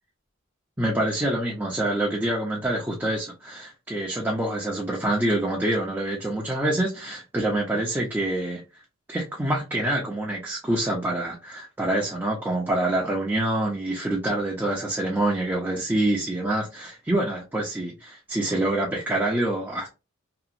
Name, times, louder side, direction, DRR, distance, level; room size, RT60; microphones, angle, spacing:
voice 1, 0.8-8.6 9.1-19.9, right 1 dB, 10° right, 0.5 m, -26 dB
2.8 x 2.4 x 2.5 m
head